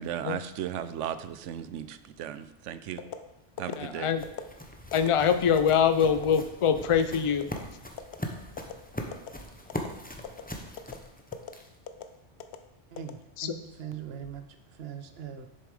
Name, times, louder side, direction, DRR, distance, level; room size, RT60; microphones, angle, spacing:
voice 1, 0.0-3.0 3.6-4.1, right 10 dB, 85° right, 13 dB, 0.9 m, -36 dB
sound 1, 3.0-3.2 3.6-3.8 4.2-4.5 4.9-5.1 5.6-5.8 6.2-6.4 6.8-7.0 7.4-7.6 8.0-8.2 8.6-8.7 9.1-9.4 9.7-9.9 10.2-10.4 10.8-11.0 11.3-11.5 11.9-12.0 12.4-12.6 13.0-13.6 14.0-14.3, left 9 dB, 65° left, 0.8 m, -39 dB
sound 2, 3.4-11.9, left 1 dB, 10° left, 0.7 m, -41 dB
voice 2, 3.8-4.2 4.9-7.5 13.4-13.5, left 7 dB, 50° left, 10 dB, 0.4 m, -24 dB
voice 3, 12.9-14.4 14.8-15.5, right 8 dB, 60° right, 9 dB, 1.0 m, -40 dB
7.3 x 7.0 x 4.9 m, 0.91 s
omnidirectional pair, 1.2 m